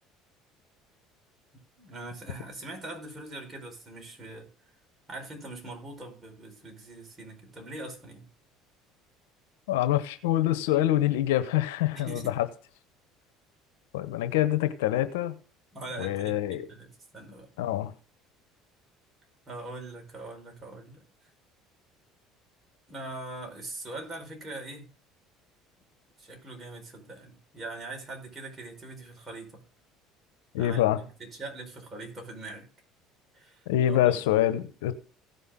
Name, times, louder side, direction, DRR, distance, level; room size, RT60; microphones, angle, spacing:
voice 1, 1.8-4.5 5.1-8.3 11.9-12.4 15.7-17.5 19.5-21.0 22.9-24.9 26.2-29.6 30.6-32.7 33.3-34.3, right 2 dB, 30° right, 4.8 m, -42 dB
voice 2, 9.7-12.5 13.9-15.4 16.0-16.7 17.6-17.9 30.5-31.0 33.7-34.9, left 13 dB, 90° left, 1.0 m, -25 dB
16.5 x 5.6 x 3.7 m
supercardioid pair, 90°, 0 cm